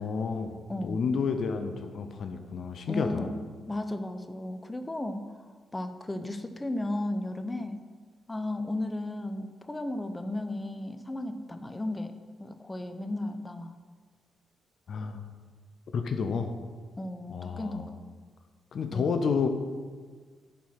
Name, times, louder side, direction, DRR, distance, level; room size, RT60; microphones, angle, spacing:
voice 1, 0.0-3.3 14.9-15.2 15.9-16.5 17.3-17.8 18.7-19.5, left 5 dB, 60° left, 7 dB, 0.7 m, -30 dB
voice 2, 0.7-1.0 2.9-3.3 3.7-5.3 5.7-7.8 8.3-12.1 12.4-13.7 17.0-18.1 18.9-19.2, left 1 dB, 20° left, 8 dB, 0.8 m, -34 dB
10.0 x 4.7 x 5.7 m, 1.5 s
supercardioid pair, 50°, 0 cm